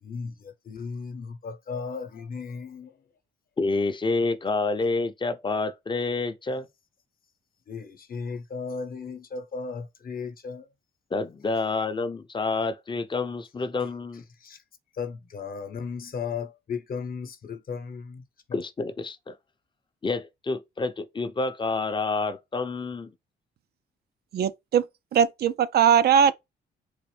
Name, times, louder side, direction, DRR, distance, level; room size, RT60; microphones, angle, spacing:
voice 1, 0.0-3.0 7.7-10.7 14.4-14.6 14.9-18.6, left 5 dB, 45° left, 0.9 m, -36 dB
voice 2, 3.6-6.7 11.1-14.2 18.5-19.4 20.0-23.1, left 3 dB, 25° left, 0.6 m, -28 dB
voice 3, 24.3-24.8 25.1-26.3, right 8 dB, 55° right, 0.4 m, -20 dB
3.9 x 2.5 x 3.2 m
cardioid pair, 90°, 20 cm